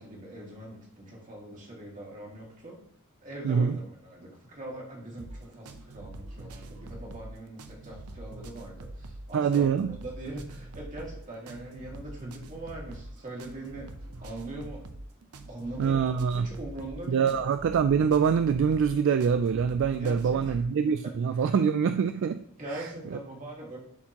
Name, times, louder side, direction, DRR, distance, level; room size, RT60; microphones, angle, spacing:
voice 1, 0.0-2.8 3.2-13.9 14.2-14.8 15.5-17.3 20.0-20.6 21.3-21.6 22.6-23.8, right 1 dB, 35° right, -3 dB, 2.2 m, -42 dB
voice 2, 3.4-3.8 9.3-10.0 15.8-16.5 17.1-22.4 22.7-23.2, right 6 dB, 60° right, 10 dB, 0.3 m, -25 dB
sound 1, 5.2-20.7, right 1 dB, 85° right, 0.7 m, -44 dB
11.0 x 4.4 x 2.9 m, 0.70 s
head